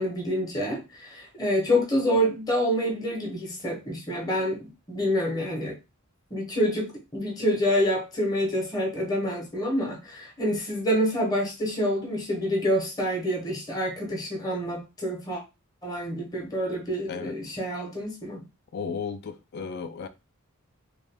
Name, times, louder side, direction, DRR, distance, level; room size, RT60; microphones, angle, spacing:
voice 1, 0.0-5.8 6.3-15.4 15.8-18.4, equal, 15° left, 0.8 m, -27 dB
voice 2, 18.7-20.1, left 5 dB, 45° left, 0.3 m, -34 dB
2.6 x 2.4 x 3.3 m
head